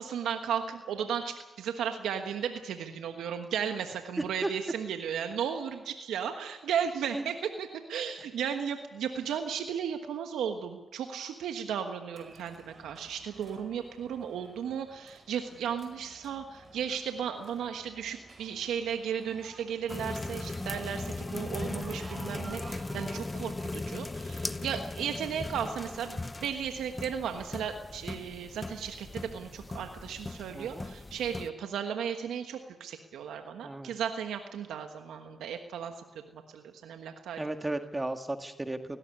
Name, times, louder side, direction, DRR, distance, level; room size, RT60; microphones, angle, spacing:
voice 1, 0.0-35.9 36.3-37.4, right 8 dB, 80° right, 6 dB, 1.3 m, -35 dB
voice 2, 4.2-4.5 7.1-7.2 30.5-30.9 33.6-33.9 37.4-39.0, right 2 dB, 25° right, 6 dB, 1.9 m, -34 dB
sound 1, 12.1-23.2, right 3 dB, 50° right, 5.3 m, -51 dB
sound 2, 19.9-31.5, left 2 dB, 30° left, 1.1 m, -38 dB
17.5 x 17.5 x 9.6 m, 1.2 s
supercardioid pair, 45°, 0 cm